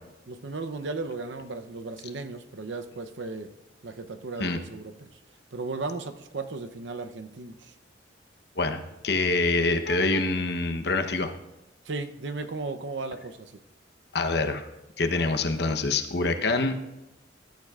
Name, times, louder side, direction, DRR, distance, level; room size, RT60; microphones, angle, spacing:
voice 1, 0.3-3.5 3.8-5.2 5.5-7.7 11.8-13.5, right 3 dB, 75° right, 8 dB, 0.7 m, -35 dB
voice 2, 8.6-11.3 14.1-14.7 15.0-16.7, left 3 dB, 60° left, 6 dB, 0.9 m, -25 dB
20.5 x 12.0 x 2.4 m, 0.95 s
head